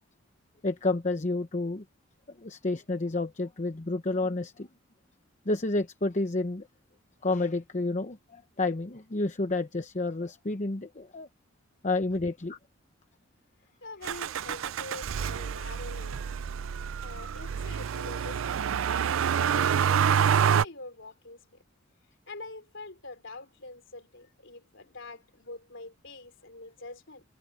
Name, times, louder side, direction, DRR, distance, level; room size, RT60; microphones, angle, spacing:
voice 1, 0.6-1.8 2.4-4.7 5.5-6.7 7.2-11.3 11.8-12.6, left 2 dB, 35° left, 0.9 m, -30 dB
voice 2, 13.8-16.2 17.0-21.6 22.3-27.2, left 2 dB, 65° left, 4.3 m, -45 dB
Motor vehicle (road), 14.0-20.6, right 8 dB, 75° right, 0.4 m, -27 dB
head